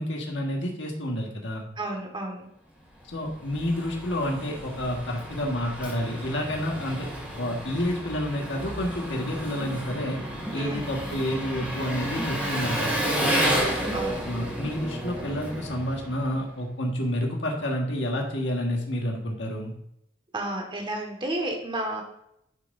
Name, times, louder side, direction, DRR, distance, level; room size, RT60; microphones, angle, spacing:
voice 1, 0.0-1.7 3.1-7.1 7.4-10.2 10.5-13.4 14.2-19.7, equal, 70° left, 0 dB, 1.6 m, -29 dB
voice 2, 1.8-2.5 10.5-10.9 13.9-14.2 20.3-22.0, right 1 dB, 25° right, 2 dB, 1.7 m, -31 dB
Engine, 3.0-16.6, equal, 10° right, 2.3 m, -31 dB
11.0 x 6.0 x 2.6 m, 0.76 s
head